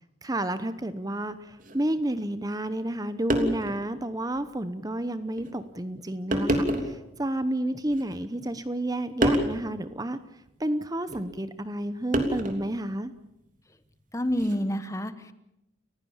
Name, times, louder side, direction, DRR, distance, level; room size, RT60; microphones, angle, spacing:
voice 1, 0.2-10.2 10.6-13.1, right 1 dB, 20° right, 12 dB, 0.9 m, -30 dB
sound 1, 1.6-1.8 2.9-3.0 3.3-3.8 4.3-4.4 5.4-5.6 6.3-7.0 7.9-8.5 9.2-9.6 11.1-11.3 12.1-12.7 14.3-14.6, equal, 40° right, 3.1 m, -27 dB
voice 2, 14.1-15.3, equal, 15° left, 12 dB, 1.1 m, -28 dB
30.0 x 16.0 x 7.3 m, 0.90 s
head